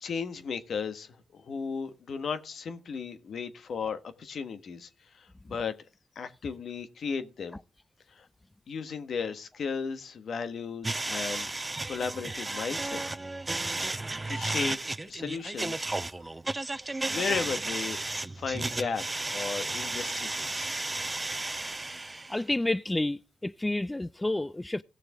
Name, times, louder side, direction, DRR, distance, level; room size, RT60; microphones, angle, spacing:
voice 1, 0.0-4.9 5.1-5.8 6.1-7.6 8.1-8.3 8.7-13.0 14.3-14.8 15.0-15.9 17.1-20.7, left 5 dB, 70° left, 1.3 m, -35 dB
sound 1, 10.8-22.4, right 2 dB, 25° right, 0.7 m, -33 dB
voice 2, 22.3-24.8, left 2 dB, 20° left, 0.4 m, -30 dB
17.5 x 6.5 x 3.6 m
supercardioid pair, 45°, 0 cm